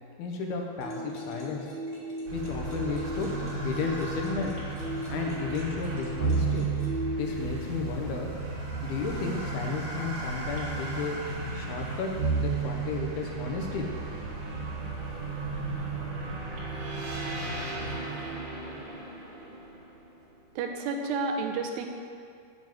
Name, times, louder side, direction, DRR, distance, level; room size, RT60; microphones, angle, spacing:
voice 1, 0.2-1.7 2.3-3.3 3.6-4.5 5.1-6.7 7.2-8.3 8.8-11.2 11.5-12.1 12.4-13.9, left 5 dB, 75° left, 1 dB, 2.8 m, -33 dB
sound 1, 0.8-8.0, equal, 55° left, 0.7 m, -37 dB
sound 2, 2.3-20.2, right 4 dB, 70° right, 3.7 m, -33 dB
voice 2, 20.6-21.9, right 4 dB, 90° right, 4 dB, 3.0 m, -30 dB
7.6 x 6.7 x 7.7 m, 2.4 s
omnidirectional pair, 4.7 m